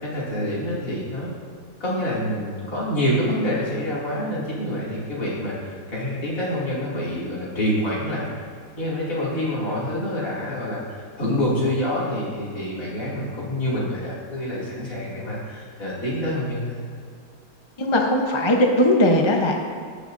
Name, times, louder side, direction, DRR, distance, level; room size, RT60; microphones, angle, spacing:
voice 1, 0.0-1.3 1.8-8.3 8.8-16.8, equal, 50° left, -7 dB, 3.0 m, -27 dB
voice 2, 17.8-19.6, left 1 dB, 30° left, 1 dB, 0.5 m, -19 dB
17.0 x 6.6 x 2.6 m, 2.2 s
omnidirectional pair, 1.8 m